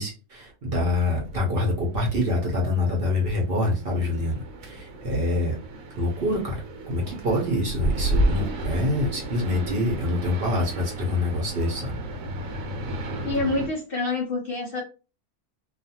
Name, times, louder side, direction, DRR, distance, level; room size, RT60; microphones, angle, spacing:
voice 1, 0.0-5.5 6.0-11.9, left 1 dB, 50° right, -1 dB, 0.8 m, -26 dB
sound 1, 0.7-13.7, right 1 dB, 80° right, 1.1 m, -32 dB
voice 2, 13.2-14.8, left 3 dB, 60° left, -1 dB, 0.6 m, -27 dB
2.4 x 2.4 x 2.7 m, 0.33 s
omnidirectional pair, 1.4 m